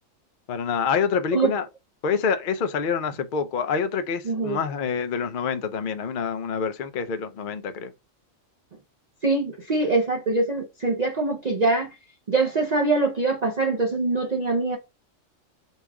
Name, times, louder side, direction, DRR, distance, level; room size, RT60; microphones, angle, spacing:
voice 1, 0.5-1.7 2.0-7.9, left 6 dB, 60° left, 0.6 m, -26 dB
voice 2, 4.3-4.6 9.2-11.9 12.3-14.8, right 3 dB, 45° right, 0.6 m, -23 dB
4.1 x 2.4 x 4.5 m
omnidirectional pair, 1.3 m